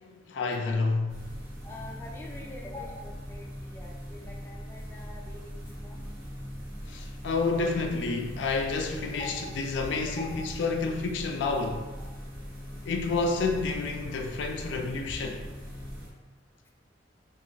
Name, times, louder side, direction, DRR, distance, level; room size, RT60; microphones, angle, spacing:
voice 1, 0.3-1.2 6.9-11.9 12.9-15.4, left 3 dB, 90° left, 0.3 m, -29 dB
sound 1, 1.1-16.1, equal, 85° right, 0.9 m, -41 dB
voice 2, 1.6-6.1 9.1-9.5 10.2-10.5 12.0-12.1, left 2 dB, 15° left, 0.3 m, -44 dB
2.9 x 2.4 x 2.6 m
head